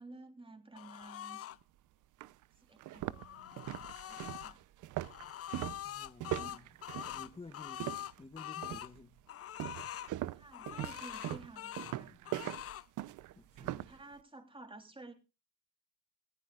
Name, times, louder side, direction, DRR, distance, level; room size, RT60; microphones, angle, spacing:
voice 1, 0.0-1.4 2.6-4.6 6.3-6.8 10.4-12.5 13.5-15.1, right 2 dB, 15° right, 6 dB, 3.3 m, -53 dB
sound 1, 0.8-1.6 3.0-4.5 5.0-8.9 9.3-10.1 10.5-12.0 12.3-12.9, left 12 dB, 50° left, 0.6 m, -44 dB
sound 2, 1.6-1.7 2.2-2.3 2.8-8.3 8.6-9.0 9.6-14.0, right 15 dB, 80° right, 0.7 m, -41 dB
voice 2, 5.8-6.7 7.1-9.2 11.8-12.2 13.3-13.9, left 3 dB, 20° left, 8 dB, 1.0 m, -53 dB
20.0 x 15.0 x 2.4 m, 0.31 s
cardioid pair, 90°, 30 cm